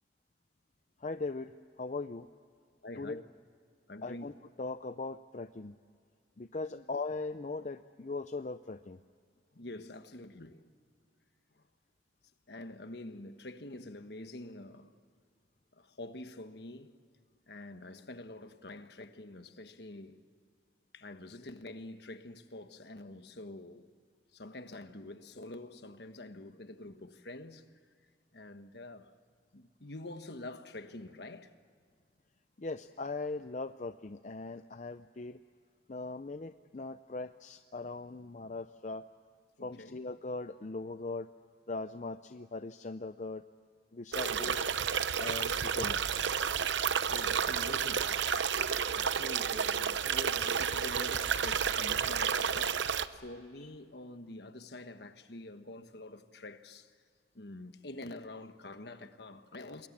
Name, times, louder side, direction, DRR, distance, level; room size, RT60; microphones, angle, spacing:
voice 1, 1.0-1.5 1.8-2.3 3.0-3.2 4.0-4.3 4.6-5.7 6.4-9.0 32.6-35.4 35.9-39.0 39.6-41.3 41.7-43.4 43.9-44.6 45.2-46.0 53.6-53.7, left 3 dB, 40° left, 0.5 m, -39 dB
voice 2, 2.8-3.2 3.9-4.2 6.7-6.8 9.5-10.7 12.5-14.9 15.7-16.9 17.5-20.2 20.9-23.9 24.3-27.6 28.3-29.1 29.5-31.5 39.6-40.0 44.3-44.5 47.0-48.1 48.5-56.9 57.3-59.9, left 2 dB, 60° left, 1.3 m, -46 dB
sound 1, 44.1-53.1, right 7 dB, 75° right, 0.8 m, -31 dB
27.5 x 21.5 x 7.4 m
head